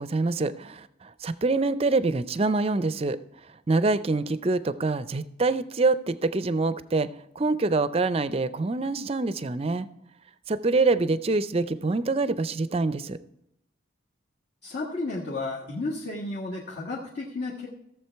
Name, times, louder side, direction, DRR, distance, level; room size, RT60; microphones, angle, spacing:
voice 1, 0.0-3.2 3.7-7.1 7.4-9.9 10.5-13.2, right 3 dB, 30° right, 14 dB, 0.4 m, -25 dB
voice 2, 14.6-17.7, left 2 dB, 55° left, -4 dB, 1.6 m, -32 dB
15.5 x 7.2 x 4.5 m, 0.80 s
head